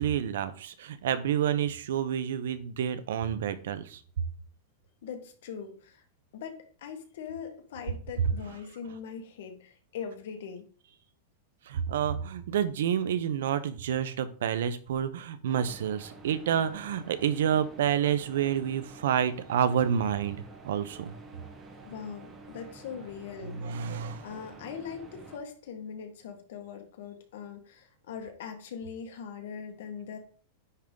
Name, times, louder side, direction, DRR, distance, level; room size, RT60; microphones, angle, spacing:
voice 1, 0.0-4.0 11.7-21.1 23.5-24.2, right 9 dB, 85° right, 13 dB, 0.7 m, -29 dB
voice 2, 5.0-6.0 6.3-10.7 21.8-23.9 24.2-30.2, left 7 dB, 70° left, 5 dB, 1.6 m, -41 dB
sound 1, 15.5-25.4, right 3 dB, 20° right, 1.4 m, -49 dB
9.8 x 3.7 x 3.9 m, 0.43 s
supercardioid pair, 160°, 0 cm